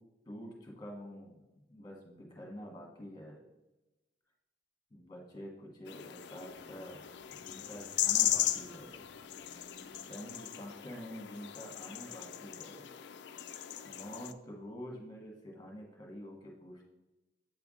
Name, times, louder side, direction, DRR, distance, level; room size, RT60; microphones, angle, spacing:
voice 1, 0.3-1.3 1.7-3.4 4.9-7.0 7.3-9.1 10.0-12.9 13.8-16.9, equal, 20° left, 0 dB, 1.3 m, -47 dB
sound 1, 5.9-14.3, left 12 dB, 60° left, 0.3 m, -37 dB
sound 2, 6.0-11.2, right 1 dB, 40° right, 0.6 m, -62 dB
7.8 x 3.5 x 3.7 m, 1.0 s
head